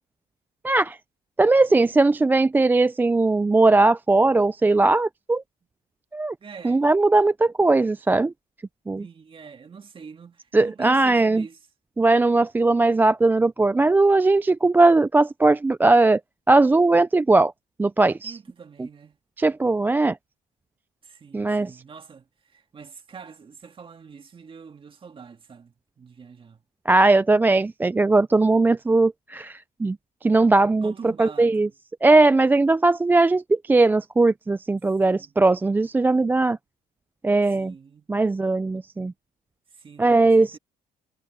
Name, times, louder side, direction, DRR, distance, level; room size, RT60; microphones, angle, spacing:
voice 1, 0.6-1.0 1.4-5.4 6.1-6.3 6.6-8.3 8.9-9.0 10.5-11.4 12.0-16.2 16.5-17.5 17.8-18.4 19.4-20.2 21.3-21.7 26.9-30.0 30.2-31.7 32.0-36.6 37.2-37.7 38.1-39.1 40.0-40.5, right 2 dB, 10° right, 0.3 m, -19 dB
voice 2, 6.4-6.8 9.0-11.6 18.2-19.2 21.0-26.6 30.8-31.7 35.0-35.3 37.4-38.1 39.7-40.6, right 6 dB, 30° right, 2.0 m, -44 dB
cardioid pair, 110°, 17 cm